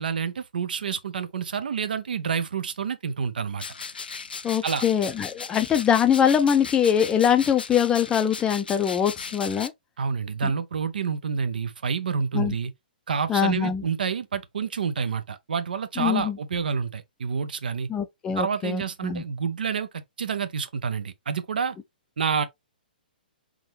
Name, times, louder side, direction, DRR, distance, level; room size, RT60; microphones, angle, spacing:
voice 1, 0.0-3.6 4.6-4.8 10.0-12.7 13.1-17.9 18.4-21.8 22.2-22.5, right 6 dB, 70° right, 0.7 m, -28 dB
sound 1, 3.6-9.7, left 5 dB, 80° left, 0.5 m, -37 dB
voice 2, 4.4-9.7 10.4-10.5 12.3-12.5 13.3-13.8 16.0-16.4 17.9-19.2, left 8 dB, 15° left, 0.5 m, -23 dB
3.7 x 3.1 x 3.2 m
figure-of-eight pair, 125°, 5 cm